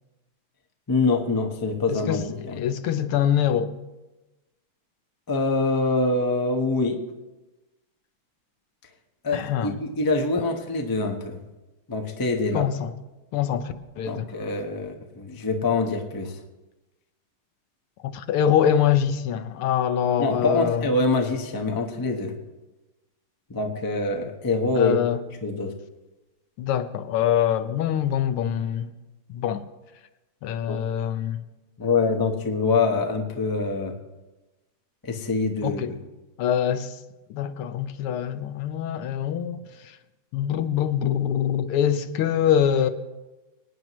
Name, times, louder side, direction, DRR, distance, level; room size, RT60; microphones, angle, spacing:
voice 1, 0.9-2.6 5.3-7.0 9.2-11.4 11.9-12.7 14.1-16.3 20.2-22.3 23.5-25.0 25.4-25.7 30.7-30.8 31.8-33.9 35.0-35.8, left 3 dB, 25° left, 0.5 m, -25 dB
voice 2, 1.9-2.2 2.5-3.8 9.3-9.8 12.5-12.9 13.3-14.3 18.0-20.9 24.7-25.2 26.6-28.9 29.3-29.7 30.4-31.4 35.6-36.0 36.4-37.0 37.3-39.9 40.3-42.9, left 9 dB, 80° left, 1.6 m, -24 dB
24.5 x 9.5 x 3.1 m
omnidirectional pair, 2.4 m